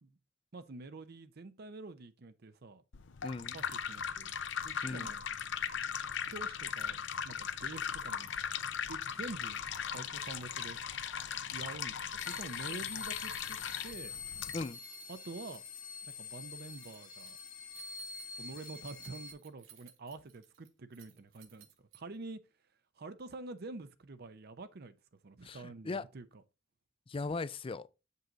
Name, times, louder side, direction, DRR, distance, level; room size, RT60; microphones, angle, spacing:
voice 1, 0.5-2.8 3.5-4.3 4.6-5.2 6.2-7.0 7.2-8.3 8.9-10.8 11.5-14.1 15.1-15.6 16.0-17.4 18.4-22.4 23.0-25.0 25.2-26.4, right 3 dB, 55° right, 0.6 m, -47 dB
sound 1, 2.9-14.6, left 7 dB, 65° left, 0.6 m, -38 dB
voice 2, 3.2-3.6 4.8-5.1 14.5-14.8 25.4-26.0 27.1-27.9, left 3 dB, 30° left, 0.4 m, -38 dB
sound 2, 12.2-19.3, left 5 dB, 45° left, 1.2 m, -46 dB
Keys jangling, 13.3-22.3, right 11 dB, 90° right, 1.3 m, -60 dB
7.5 x 5.5 x 3.9 m
head